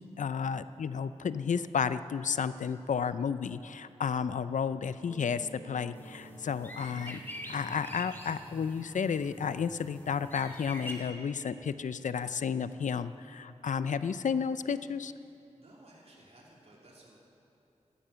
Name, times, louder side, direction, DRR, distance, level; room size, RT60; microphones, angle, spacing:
voice 1, 0.0-7.2 7.5-15.1, left 6 dB, 90° left, 13 dB, 0.5 m, -32 dB
Mallet percussion, 5.0-10.6, right 2 dB, 60° left, 3.9 m, -55 dB
sound 1, 5.9-11.0, equal, 15° left, 2.1 m, -45 dB
voice 2, 15.6-17.2, right 1 dB, 55° right, -4 dB, 3.0 m, -57 dB
13.0 x 12.5 x 8.9 m, 3.0 s
wide cardioid pair, 70°, 12 cm